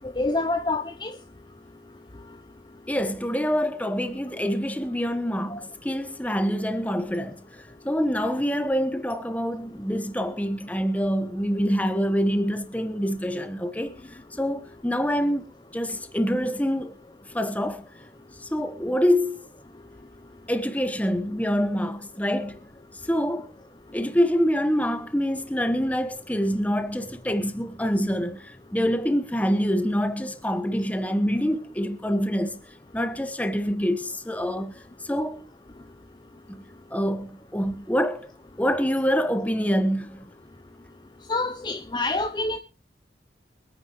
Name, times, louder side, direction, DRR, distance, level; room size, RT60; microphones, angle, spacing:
voice 1, 0.2-1.1 41.3-42.6, left 2 dB, 25° left, 0.7 m, -26 dB
voice 2, 2.9-7.4 7.8-14.0 14.3-15.4 15.7-16.9 17.3-17.8 18.5-19.4 20.5-22.6 23.1-23.5 23.9-32.6 32.9-34.7 35.0-35.4 36.9-38.3 38.6-40.3, equal, 10° left, 1.2 m, -26 dB
24.5 x 9.6 x 3.1 m
head